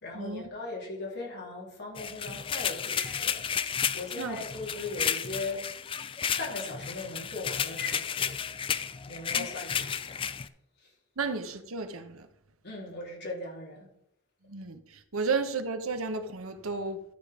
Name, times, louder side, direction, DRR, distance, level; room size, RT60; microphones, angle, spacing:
voice 1, 0.0-3.4 3.9-5.6 6.4-8.3 9.1-10.3 12.6-13.9, left 3 dB, 55° left, 3.3 m, -38 dB
sound 1, 2.0-10.5, left 7 dB, 25° left, 0.4 m, -32 dB
voice 2, 4.1-4.5 9.3-9.5 11.2-12.3 14.5-17.0, right 4 dB, 75° right, 1.0 m, -33 dB
12.5 x 5.1 x 5.0 m
head